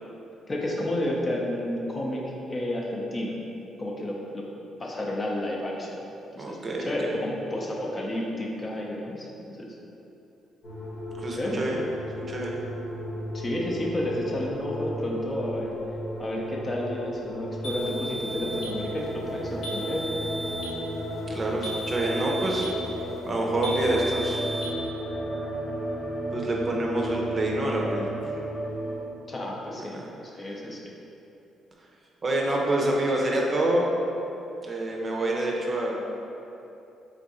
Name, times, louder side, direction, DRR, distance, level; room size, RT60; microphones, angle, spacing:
voice 1, 0.5-3.4 3.8-4.5 4.8-6.0 6.3-9.7 11.3-11.6 13.3-15.8 16.2-20.1 29.3-30.0 30.3-30.8, left 1 dB, 30° left, -2 dB, 0.6 m, -31 dB
voice 2, 6.4-6.9 11.2-11.8 12.3-12.6 21.3-22.7 23.3-24.4 26.3-28.1 29.9-30.1 30.4-30.6 32.2-33.9 34.6-36.0, right 1 dB, 35° right, -2 dB, 0.6 m, -27 dB
sound 1, 10.6-29.0, equal, 55° left, 1.1 m, -34 dB
sound 2, 17.6-18.8 19.6-20.8 21.6-22.8 23.6-24.7, right 1 dB, 70° left, 0.7 m, -35 dB
3.5 x 2.5 x 4.1 m, 2.8 s
cardioid pair, 90°, 0 cm